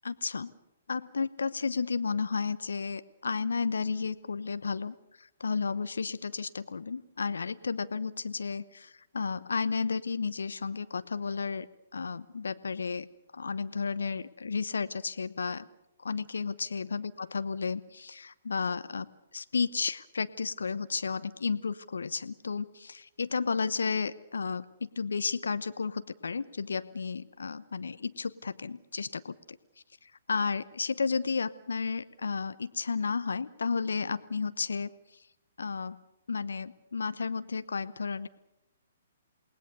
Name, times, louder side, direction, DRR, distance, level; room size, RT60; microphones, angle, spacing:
voice 1, 0.0-0.5 0.9-11.7 11.9-13.1 13.3-15.7 16.0-19.1 19.3-29.6 30.0-35.2 35.6-36.0 36.3-38.3, left 5 dB, 75° left, 14 dB, 0.9 m, -33 dB
28.5 x 20.0 x 6.8 m, 0.85 s
figure-of-eight pair, 130°, 0 cm